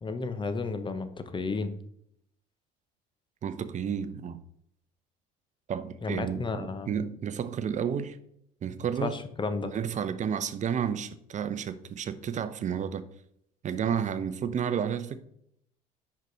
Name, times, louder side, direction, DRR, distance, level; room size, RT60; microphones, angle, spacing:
voice 1, 0.0-1.7 6.0-6.9 9.0-9.7, left 4 dB, 25° left, 0.9 m, -32 dB
voice 2, 3.4-4.4 5.7-8.2 8.6-9.2 9.7-13.0 13.6-15.2, right 8 dB, 40° right, 0.7 m, -31 dB
5.7 x 5.2 x 4.0 m
supercardioid pair, 80°, 19 cm